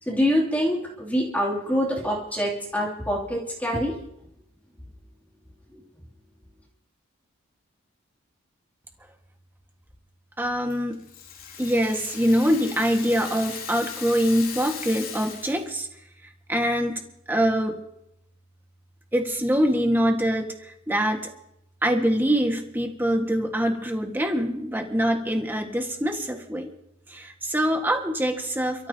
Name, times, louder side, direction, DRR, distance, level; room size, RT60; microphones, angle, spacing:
voice 1, 0.1-3.9 5.7-5.8, equal, 10° left, -3 dB, 2.9 m, -25 dB
voice 2, 10.4-11.0 11.6-15.9 16.5-17.0 17.3-17.7 19.1-21.3 21.8-26.7 27.1-28.9, equal, 10° right, 3 dB, 1.6 m, -24 dB
Rattle (instrument), 10.7-15.8, left 7 dB, 85° left, 3.3 m, -38 dB
30.0 x 13.5 x 2.9 m, 0.80 s
head